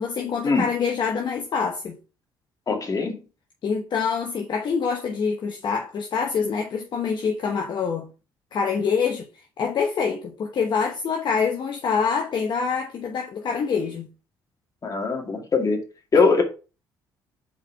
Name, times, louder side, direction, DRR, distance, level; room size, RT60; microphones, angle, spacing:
voice 1, 0.0-2.0 3.6-8.1 8.5-9.3 9.6-14.1, left 6 dB, 55° left, 1.0 m, -25 dB
voice 2, 2.7-3.2 14.8-15.8 16.1-16.4, left 4 dB, 40° left, 2.2 m, -21 dB
4.9 x 4.6 x 4.6 m
supercardioid pair, 70°, 9 cm